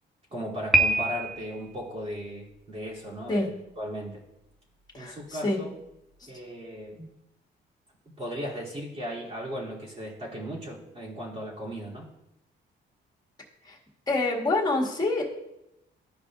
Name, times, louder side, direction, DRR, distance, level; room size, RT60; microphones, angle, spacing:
voice 1, 0.3-3.5 3.8-4.2 4.9-5.7 6.3-7.0 8.2-12.1, equal, 30° right, -5 dB, 2.7 m, -36 dB
Piano, 0.7-1.7, right 1 dB, ahead, 0.7 m, -24 dB
voice 2, 4.9-5.6 6.2-6.3 7.0-7.1 13.6-13.8 14.1-15.2, left 2 dB, 20° left, -2 dB, 1.8 m, -27 dB
12.5 x 5.0 x 2.4 m, 0.87 s
cardioid pair, 90°, 20 cm